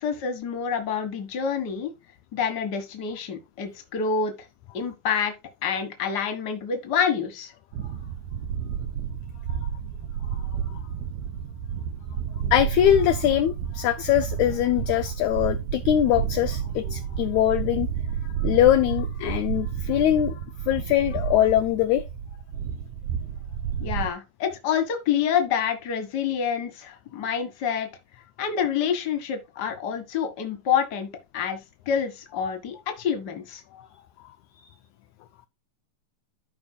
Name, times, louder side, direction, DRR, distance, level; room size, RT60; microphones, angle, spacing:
voice 1, 0.0-1.9 2.3-4.3 4.7-5.3 5.6-7.5 23.8-27.9 28.4-31.1 31.3-31.6 31.8-33.6, left 7 dB, 45° left, 1.5 m, -27 dB
sound 1, 7.7-24.1, right 8 dB, 75° right, 1.7 m, -31 dB
voice 2, 12.5-17.9 18.4-20.4 20.7-22.0 32.4-32.5 33.7-33.9, left 12 dB, 80° left, 1.7 m, -22 dB
13.5 x 5.3 x 2.2 m
omnidirectional pair, 3.9 m